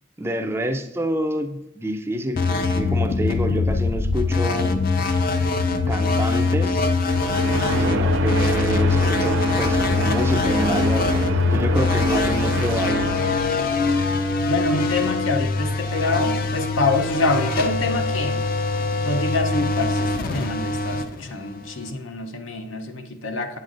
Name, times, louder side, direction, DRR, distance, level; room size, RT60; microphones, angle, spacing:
voice 1, 0.2-4.8 5.9-6.9 7.8-13.1, equal, 10° right, 7 dB, 0.3 m, -27 dB
sound 1, 2.4-21.9, left 3 dB, 45° left, 0.5 m, -23 dB
sound 2, 7.0-13.9, right 3 dB, 75° right, 0.5 m, -28 dB
voice 2, 14.5-18.4 19.1-23.6, left 3 dB, 85° left, 6 dB, 0.7 m, -26 dB
8.2 x 7.6 x 2.5 m, 0.91 s
head